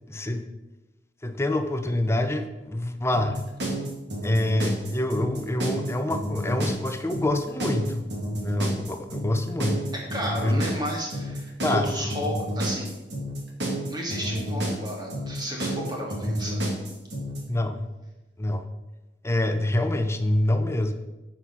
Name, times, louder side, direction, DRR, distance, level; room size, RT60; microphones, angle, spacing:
voice 1, 0.1-0.4 1.2-3.4 4.2-8.1 8.4-9.8 10.4-10.6 11.6-11.9 16.3-16.4 17.5-17.9 18.4-18.6 19.2-20.9, left 1 dB, 15° left, 7 dB, 0.7 m, -26 dB
sound 1, 3.1-17.4, equal, 65° right, 2.3 m, -30 dB
voice 2, 9.9-12.9 13.9-16.7, equal, 25° right, -2 dB, 2.4 m, -33 dB
8.6 x 5.7 x 5.9 m, 1.0 s
head